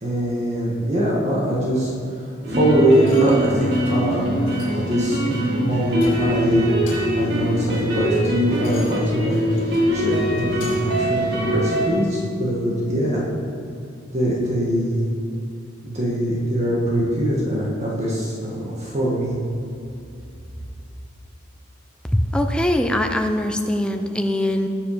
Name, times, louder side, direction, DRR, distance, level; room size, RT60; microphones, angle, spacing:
voice 1, 0.0-1.9 2.5-6.8 7.2-9.4 9.9-13.3 14.1-15.1 15.8-19.3, right 1 dB, 35° right, -5 dB, 2.0 m, -22 dB
sound 1, 2.4-11.9, equal, 55° right, 2.5 m, -23 dB
sound 2, 3.0-3.4 3.8-4.1 4.5-4.9 5.3-5.5 5.9-6.4 6.7-7.3 7.7-11.0 11.5-11.6, left 3 dB, 75° left, 3.5 m, -42 dB
voice 2, 22.1-24.7, left 1 dB, 5° left, 4 dB, 0.7 m, -22 dB
20.0 x 7.0 x 5.2 m, 2.5 s
head